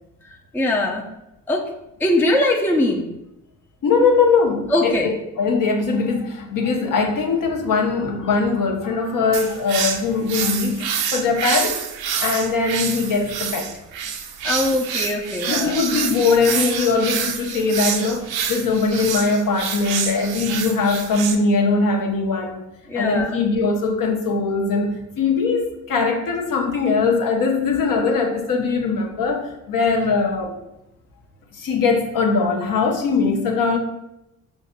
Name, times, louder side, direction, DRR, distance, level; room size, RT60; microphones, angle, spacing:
voice 1, 0.5-1.0 1.5-1.7 2.0-3.1 4.7-5.1 14.4-15.8 22.9-23.3, left 1 dB, 5° left, 0 dB, 0.5 m, -21 dB
voice 2, 3.8-11.8 12.2-13.7 15.4-22.7 22.9-24.9 25.2-30.5 31.5-33.8, left 4 dB, 50° left, 2 dB, 0.8 m, -21 dB
sound 1, 9.3-21.3, right 7 dB, 60° right, 0.6 m, -27 dB
5.6 x 2.7 x 2.2 m, 0.88 s
hypercardioid pair, 55°, 42 cm